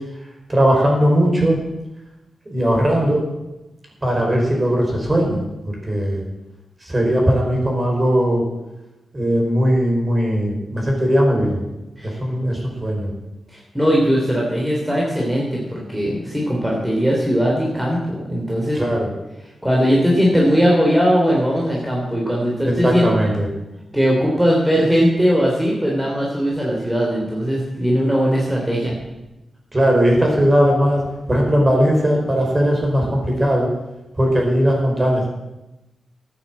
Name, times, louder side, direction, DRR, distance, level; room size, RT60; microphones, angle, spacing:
voice 1, 0.5-1.6 2.5-3.2 4.0-6.2 6.8-8.4 9.1-11.6 12.0-13.1 18.7-19.1 22.6-23.5 29.7-31.0 31.3-33.7 34.2-35.3, equal, 25° right, 0 dB, 5.4 m, -18 dB
voice 2, 13.5-18.8 19.6-23.3 23.9-28.9, equal, 5° right, -3 dB, 3.6 m, -19 dB
13.0 x 9.4 x 7.7 m, 0.98 s
cardioid pair, 75°, 0 cm